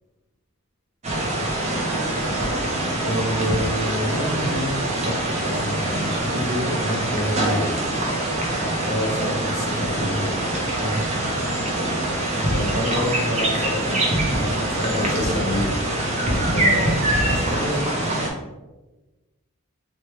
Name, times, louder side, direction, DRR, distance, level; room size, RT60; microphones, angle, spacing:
sound 1, 1.0-18.3, right 1 dB, 30° right, 0.5 m, -24 dB
voice 1, 3.0-7.6 10.8-11.2, equal, 90° right, -3 dB, 1.0 m, -28 dB
voice 2, 8.8-10.4 12.5-16.0 16.3-17.8, left 1 dB, 50° left, -3 dB, 0.9 m, -28 dB
3.2 x 2.2 x 2.9 m, 1.1 s
head